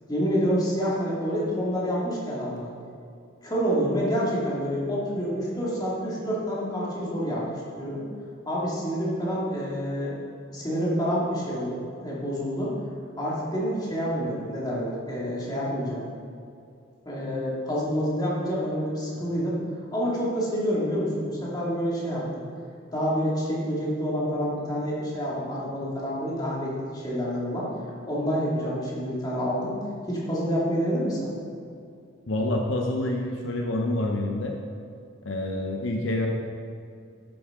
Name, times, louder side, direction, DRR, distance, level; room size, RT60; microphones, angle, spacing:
voice 1, 0.1-2.7 3.4-8.0 8.5-10.2 10.5-12.7 13.2-16.0 17.1-22.4 22.9-27.7 28.1-29.8 30.1-31.3, equal, 20° left, -6 dB, 2.3 m, -28 dB
voice 2, 32.3-34.5 35.2-36.3, left 1 dB, 70° left, 1 dB, 0.8 m, -27 dB
11.5 x 7.2 x 3.8 m, 2.4 s
head